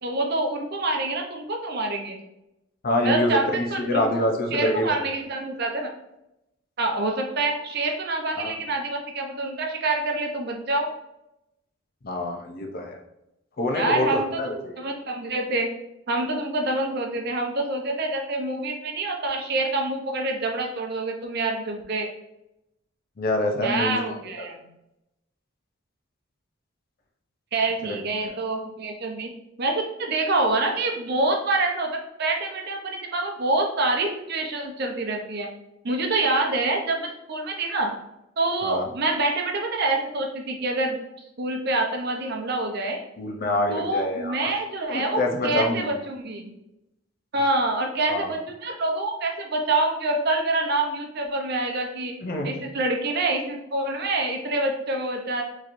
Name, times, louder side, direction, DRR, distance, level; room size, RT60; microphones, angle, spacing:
voice 1, 0.0-2.2 3.0-4.0 4.5-5.9 6.8-10.9 13.7-14.4 14.8-15.7 16.1-22.1 23.6-24.7 27.5-29.3 29.6-35.5 35.8-37.9 38.4-41.0 41.4-43.0 43.7-46.5 47.3-52.1 52.4-55.4, right 2 dB, 50° right, 2 dB, 0.6 m, -26 dB
voice 2, 2.8-4.9 8.3-8.6 12.0-13.0 13.6-14.8 23.2-24.0 24.4-24.5 27.8-28.0 28.3-28.4 38.6-38.9 43.2-44.5 44.9-45.9 48.1-48.3 52.2-52.6, left 1 dB, 45° left, 3 dB, 0.6 m, -26 dB
4.1 x 3.1 x 2.6 m, 0.87 s
head